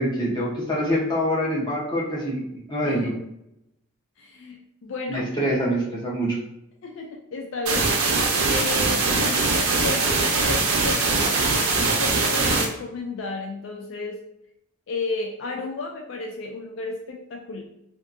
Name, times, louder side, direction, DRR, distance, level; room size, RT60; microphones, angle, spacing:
voice 1, 0.0-3.2 5.1-6.4, equal, 20° left, -5 dB, 0.7 m, -25 dB
voice 2, 4.2-5.6 6.8-7.9 8.5-14.2 14.9-17.6, left 3 dB, 60° left, 1 dB, 0.3 m, -33 dB
sound 1, 7.7-12.7, right 3 dB, 85° right, 0.5 m, -22 dB
2.8 x 2.2 x 2.4 m, 0.81 s
head